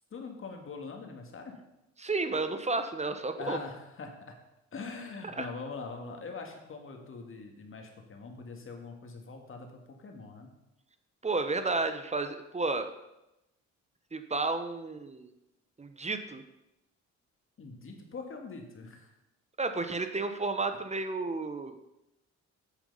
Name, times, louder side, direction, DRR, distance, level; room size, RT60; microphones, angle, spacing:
voice 1, 0.1-1.6 3.4-4.4 4.7-10.5 17.6-19.1, left 4 dB, 45° left, 4 dB, 1.9 m, -43 dB
voice 2, 2.0-3.6 5.4-5.5 11.2-12.9 14.1-15.3 15.8-16.4 19.6-21.7, right 3 dB, 20° right, 9 dB, 0.8 m, -32 dB
8.3 x 7.4 x 5.5 m, 0.91 s
cardioid pair, 90°, 30 cm